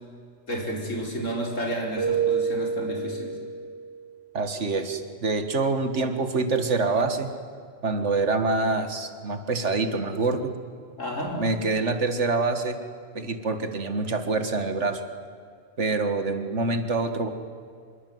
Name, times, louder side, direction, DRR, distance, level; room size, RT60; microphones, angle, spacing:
voice 1, 0.5-3.3 11.0-11.4, equal, 80° left, 0 dB, 5.0 m, -31 dB
Keyboard (musical), 2.0-4.0, right 6 dB, 45° right, 3.6 m, -28 dB
voice 2, 4.3-7.3 7.8-10.5 11.4-12.8 13.1-15.0 15.8-17.3, right 3 dB, 65° right, 8 dB, 2.0 m, -26 dB
25.5 x 22.5 x 9.5 m, 2.2 s
omnidirectional pair, 1.3 m